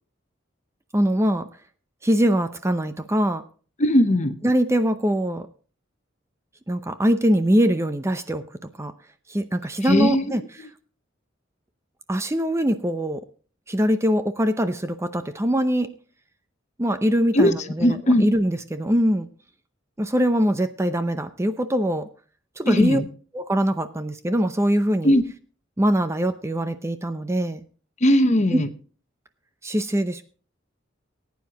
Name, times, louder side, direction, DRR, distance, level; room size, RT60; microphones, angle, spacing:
voice 1, 0.9-1.5 2.0-3.4 4.4-5.5 6.7-8.4 8.8-8.9 9.3-10.4 12.1-13.2 13.7-15.9 16.8-19.3 20.0-22.1 22.6-23.0 23.3-25.1 25.8-27.6 28.5-28.6 29.6-30.2, equal, 15° right, 10 dB, 0.6 m, -22 dB
voice 2, 3.8-4.4 9.9-10.3 17.3-17.5 17.8-18.3 22.7-23.0 25.0-25.2 28.0-28.7, left 1 dB, 35° left, 10 dB, 0.9 m, -18 dB
19.0 x 9.4 x 3.0 m, 0.39 s
head